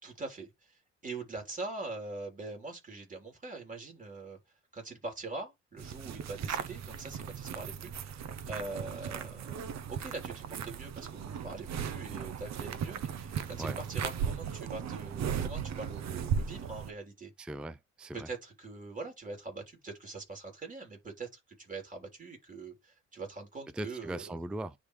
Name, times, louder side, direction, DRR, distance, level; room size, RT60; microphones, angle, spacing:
voice 1, 0.0-4.4 4.7-17.3 18.1-24.2, right 3 dB, 25° right, 3.6 m, -43 dB
sound 1, 5.8-16.9, right 7 dB, 65° right, 0.9 m, -37 dB
voice 2, 17.4-18.3 23.7-24.7, right 1 dB, 5° right, 0.4 m, -39 dB
9.9 x 3.5 x 3.2 m
cardioid pair, 90°, 30 cm